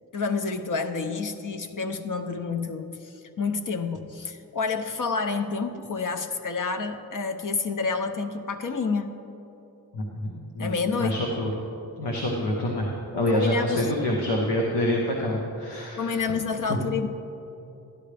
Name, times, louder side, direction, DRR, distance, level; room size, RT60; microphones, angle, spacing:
voice 1, 0.1-9.1 10.6-11.2 13.3-13.9 16.0-17.1, left 4 dB, 55° left, 7 dB, 0.7 m, -29 dB
voice 2, 9.9-11.5 12.0-16.2 16.7-16.8, left 1 dB, 90° left, -1 dB, 1.2 m, -27 dB
12.5 x 10.5 x 3.4 m, 2.9 s
cardioid pair, 70°, 39 cm